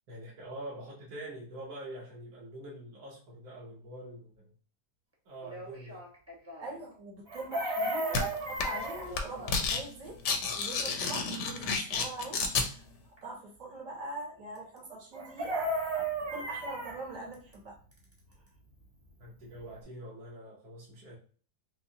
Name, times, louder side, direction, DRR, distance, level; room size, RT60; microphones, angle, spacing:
voice 1, 0.1-4.5 5.2-6.0 19.2-21.2, right 1 dB, 65° right, -4 dB, 1.4 m, -45 dB
sound 1, 5.1-5.2 5.4-6.8 7.8-8.2 8.6-9.7 11.8-12.1 12.4-12.5 13.2-13.3 14.5-14.8 15.4-15.5 17.3-17.5 17.9-18.5, left 1 dB, 10° right, 0.9 m, -48 dB
voice 2, 6.6-10.2 10.5-12.8 13.2-17.8, right 2 dB, 80° right, -3 dB, 2.0 m, -42 dB
Chicken rooster, 7.3-9.1 15.2-17.0 19.2-19.3 19.6-19.8, right 1 dB, 35° right, 0.9 m, -33 dB
sound 2, 8.1-8.2 8.6-8.9 9.1-9.8 10.1-12.7, left 4 dB, 65° left, 0.7 m, -30 dB
5.3 x 2.0 x 2.7 m, 0.43 s
omnidirectional pair, 1.8 m